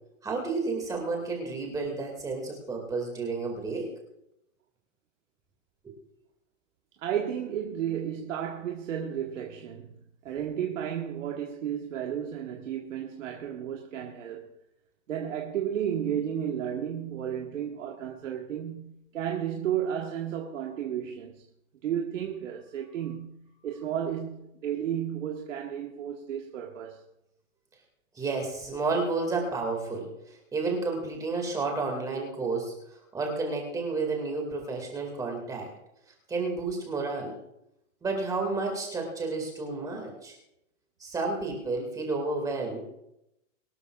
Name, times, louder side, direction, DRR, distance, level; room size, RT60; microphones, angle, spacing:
voice 1, 0.2-3.9 28.1-35.7 36.3-37.3 38.0-40.4 41.0-42.8, right 3 dB, 10° right, 2.1 m, -31 dB
voice 2, 7.0-14.5 15.1-21.5 21.8-27.0, right 9 dB, 70° right, 1.5 m, -33 dB
22.5 x 12.5 x 2.4 m
hypercardioid pair, 165°, 40 cm